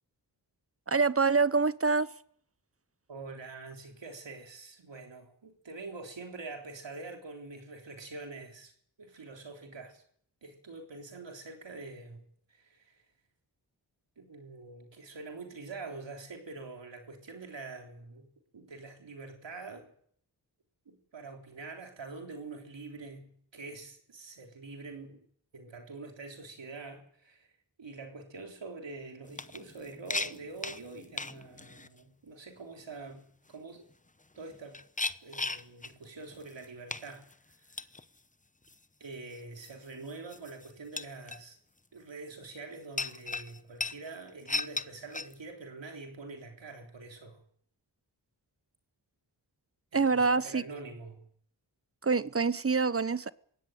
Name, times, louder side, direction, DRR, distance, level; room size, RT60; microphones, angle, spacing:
voice 1, 0.9-2.1 49.9-50.6 52.0-53.3, right 4 dB, 30° right, 0.9 m, -26 dB
voice 2, 3.1-8.7 9.0-10.0 10.4-13.1 14.2-18.3 18.5-19.9 20.9-25.3 25.5-27.5 27.8-33.9 34.4-34.8 35.2-37.3 37.6-37.8 39.0-41.6 41.9-47.5 49.9-51.3, right 3 dB, 85° right, 3.6 m, -45 dB
sound 1, 29.2-31.9 33.9-34.0 34.5-36.0 36.3-36.6 36.9-37.3 37.7-38.0 38.7-38.8 39.3-39.7 40.3-40.7 41.0-41.4 43.0-44.9 45.1-45.3, left 3 dB, 20° left, 0.9 m, -37 dB
19.0 x 16.5 x 9.2 m
cardioid pair, 50°, 43 cm